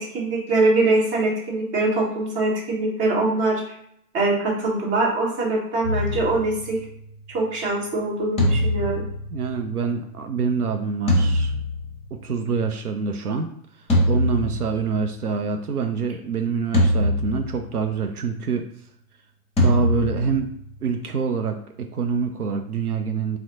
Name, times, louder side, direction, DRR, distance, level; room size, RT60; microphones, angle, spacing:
voice 1, 0.0-3.6 4.1-6.8 7.3-9.0, right 2 dB, 25° right, -2 dB, 1.2 m, -23 dB
sound 1, 5.8-7.1 8.4-10.1 11.1-12.4 13.9-15.3 16.7-17.9 19.6-21.0, left 1 dB, 15° left, 1.2 m, -24 dB
voice 2, 9.3-11.5 12.2-13.5 14.1-18.6 19.6-20.5 20.8-23.4, right 5 dB, 80° right, 5 dB, 0.6 m, -26 dB
4.2 x 2.1 x 3.8 m, 0.71 s
figure-of-eight pair, 100°, 44 cm